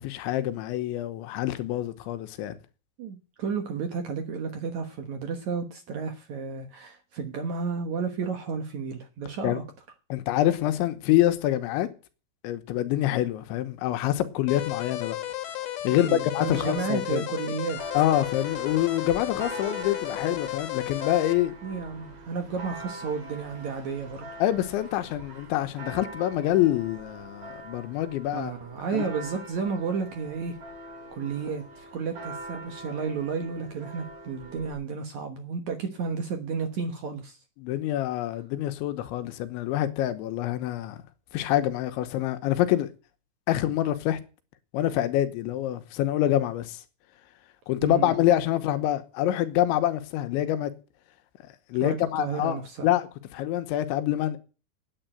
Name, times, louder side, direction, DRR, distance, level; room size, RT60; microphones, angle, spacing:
voice 1, 0.0-2.5 9.4-9.6 10.1-11.9 12.4-15.2 15.8-17.3 17.9-21.6 24.4-28.5 28.9-29.1 37.6-41.0 41.3-42.9 43.5-44.2 44.7-46.8 47.7-50.7 51.4-54.4, left 13 dB, 80° left, 3.4 m, -26 dB
voice 2, 3.0-9.6 15.9-17.8 21.6-24.2 28.3-30.6 31.1-37.4 47.8-48.1 51.8-52.9, right 5 dB, 70° right, 1.7 m, -32 dB
sound 1, 14.5-21.3, left 13 dB, 65° left, 2.8 m, -34 dB
Church bell, 17.8-34.7, right 2 dB, 45° right, 4.7 m, -43 dB
9.4 x 9.1 x 9.1 m
omnidirectional pair, 5.3 m